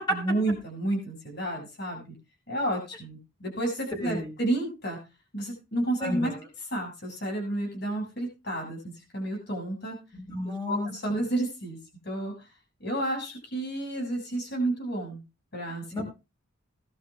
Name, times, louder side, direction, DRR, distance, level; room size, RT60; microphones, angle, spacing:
voice 1, 0.1-2.1 2.5-5.0 5.3-6.3 6.7-8.8 9.1-10.0 10.7-11.8 12.0-12.3 12.8-15.2 15.5-15.8, right 1 dB, 55° left, 0 dB, 6.7 m, -30 dB
voice 2, 4.0-4.3 6.0-6.4 10.3-10.9 15.9-16.0, equal, 20° left, 2 dB, 4.5 m, -31 dB
19.0 x 11.5 x 2.4 m, 0.29 s
head